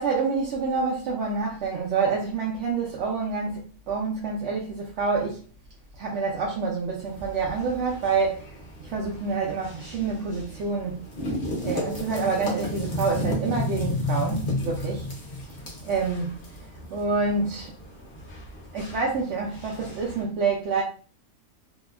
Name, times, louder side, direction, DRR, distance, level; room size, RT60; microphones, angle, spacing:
voice 1, 0.0-5.4 5.9-11.0 11.6-15.1 15.8-17.7 18.7-20.8, right 4 dB, 65° right, 0.8 m, -27 dB
sound 1, 7.0-20.2, left 1 dB, 45° left, 0.8 m, -33 dB
2.7 x 2.2 x 2.2 m
omnidirectional pair, 1.5 m